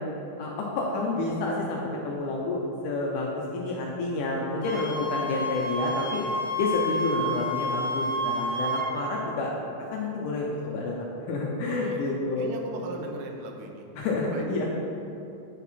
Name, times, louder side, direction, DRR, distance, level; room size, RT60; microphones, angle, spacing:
voice 1, 0.4-1.8 2.0-6.2 6.6-9.5 9.9-12.5 14.0-14.7, left 2 dB, 80° left, -2 dB, 1.9 m, -29 dB
Wind instrument woodwind instrument, 4.6-8.9, equal, 60° left, 2.3 m, -30 dB
voice 2, 11.8-13.8 14.3-14.6, right 2 dB, 90° right, 2 dB, 2.6 m, -38 dB
8.9 x 4.4 x 4.1 m, 2.8 s
omnidirectional pair, 4.2 m